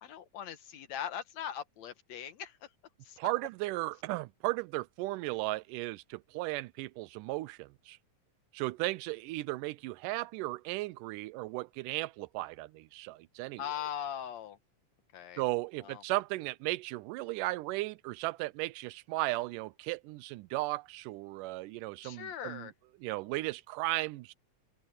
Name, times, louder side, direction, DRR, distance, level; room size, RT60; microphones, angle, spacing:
voice 1, 0.0-2.7 3.0-3.2 13.6-14.6 15.1-15.4 15.8-16.0 22.0-22.7, left 9 dB, 65° left, 2.2 m, -40 dB
voice 2, 3.2-8.0 8.5-13.6 15.4-22.7 23.0-24.3, right 20 dB, 90° right, 2.2 m, -35 dB
open air
omnidirectional pair, 3.6 m